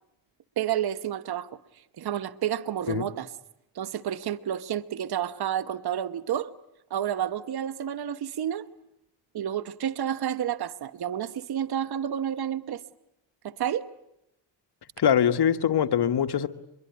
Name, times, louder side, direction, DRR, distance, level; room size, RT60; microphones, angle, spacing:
voice 1, 0.6-1.6 2.0-3.3 3.7-6.5 6.9-8.7 9.3-12.8 13.4-13.9, right 10 dB, 50° right, 1.1 m, -30 dB
voice 2, 15.0-16.5, left 8 dB, 55° left, 1.6 m, -23 dB
25.0 x 22.5 x 9.5 m
cardioid pair, 75°, 47 cm